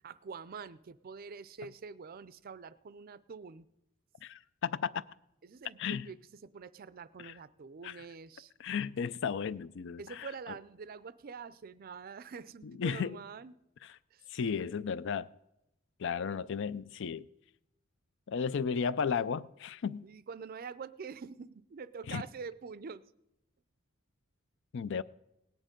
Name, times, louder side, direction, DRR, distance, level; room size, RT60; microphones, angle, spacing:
voice 1, 0.0-3.7 5.4-8.5 10.0-13.6 14.1-14.3 20.0-23.0, right 5 dB, 45° right, 0.4 m, -46 dB
voice 2, 4.2-5.0 5.8-6.1 7.2-7.3 7.8-7.9 8.6-10.3 12.6-13.2 14.3-15.3 16.0-17.3 18.3-20.1 22.1-22.2 24.7-25.0, left 6 dB, 60° left, 0.4 m, -34 dB
18.0 x 9.8 x 5.2 m
head